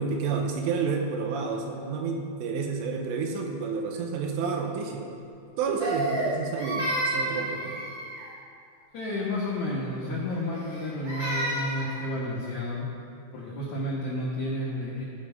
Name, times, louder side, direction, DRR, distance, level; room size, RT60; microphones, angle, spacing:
voice 1, 0.0-5.1 5.6-7.9, right 5 dB, 85° right, 2 dB, 2.8 m, -30 dB
Crying sobbing, 5.8-8.3 10.5-12.0, right 1 dB, 50° right, 3.8 m, -30 dB
voice 2, 8.9-12.9 13.3-15.0, left 1 dB, 75° left, -6 dB, 1.7 m, -31 dB
15.0 x 5.5 x 5.5 m, 2.4 s
omnidirectional pair, 5.4 m